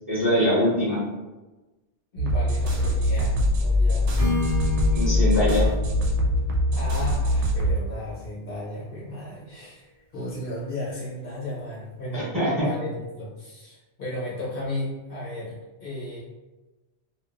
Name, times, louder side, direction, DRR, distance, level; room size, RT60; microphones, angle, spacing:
voice 1, 0.1-1.0 4.9-5.7 12.1-12.5, equal, 20° right, -10 dB, 0.8 m, -22 dB
voice 2, 2.1-4.2 6.7-16.2, left 1 dB, 55° left, -7 dB, 0.9 m, -34 dB
sound 1, 2.2-7.8, left 1 dB, 80° right, 0.9 m, -22 dB
Acoustic guitar / Strum, 4.2-8.1, left 3 dB, 50° right, 0.4 m, -33 dB
2.4 x 2.2 x 2.4 m, 1.1 s
omnidirectional pair, 1.2 m